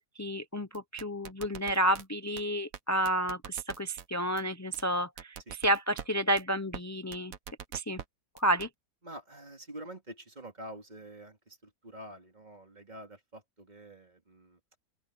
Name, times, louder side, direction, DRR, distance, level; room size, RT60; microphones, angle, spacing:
voice 1, 0.0-7.3 7.7-8.0 8.3-8.7, right 1 dB, 25° left, 0.3 m, -30 dB
sound 1, 0.7-2.0 2.4-2.5 2.7-2.8 3.1-4.1 4.4-4.5 4.7-4.8 5.2-6.1 6.4-6.5 6.7-6.8 7.1-8.1 8.4-8.7, right 8 dB, 65° right, 1.4 m, -43 dB
voice 2, 9.0-14.6, right 1 dB, 30° right, 2.5 m, -47 dB
open air
omnidirectional pair, 1.6 m